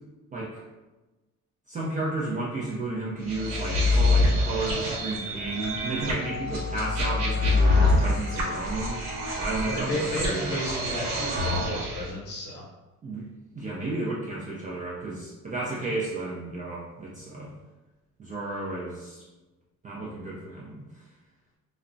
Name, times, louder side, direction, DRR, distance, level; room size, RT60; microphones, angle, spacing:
voice 1, 0.3-0.6 1.7-9.0 9.4-10.6 13.0-13.3 13.5-17.5 18.2-19.3 19.8-20.8, right 2 dB, 25° right, -5 dB, 0.4 m, -33 dB
sound 1, 3.3-12.1, left 2 dB, 55° right, 0.9 m, -26 dB
voice 2, 9.7-12.6, equal, 35° left, -4 dB, 0.8 m, -32 dB
2.3 x 2.0 x 3.7 m, 1.1 s
cardioid pair, 160°, 32 cm